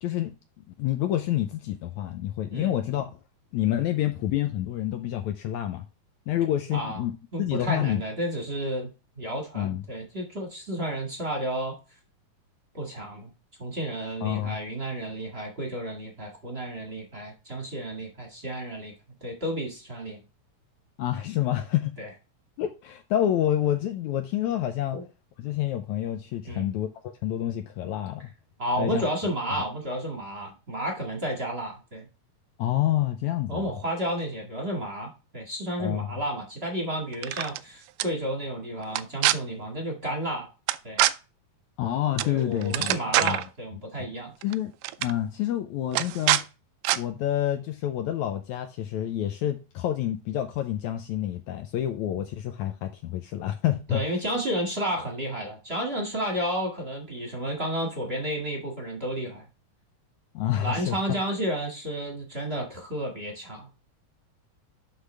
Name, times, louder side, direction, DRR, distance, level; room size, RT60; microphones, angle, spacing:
voice 1, 0.0-3.2 3.5-5.8 6.3-7.1 7.4-8.0 9.6-9.8 14.2-14.6 21.0-22.0 22.6-25.0 25.4-26.9 27.2-28.3 28.8-29.1 32.6-33.7 35.8-36.1 41.8-42.9 43.2-43.4 44.4-44.7 45.0-46.4 47.0-54.0 60.4-61.0, left 12 dB, 75° left, 1.8 m, -28 dB
voice 2, 7.3-8.9 9.2-11.8 12.7-13.3 13.6-18.9 19.2-20.2 22.0-22.1 24.9-25.0 26.4-26.7 28.6-32.1 33.5-40.5 40.8-41.0 42.2-44.3 53.9-59.4 60.5-63.7, equal, 30° right, 1.3 m, -31 dB
sound 1, 37.1-37.6 38.0-38.1 38.9-39.4 40.7-41.1 42.2-42.4 42.6-43.5 44.4-44.6 44.8-45.1 45.9-46.4 46.8-47.0, right 16 dB, 85° right, 2.2 m, -24 dB
11.5 x 4.0 x 3.3 m
omnidirectional pair, 3.8 m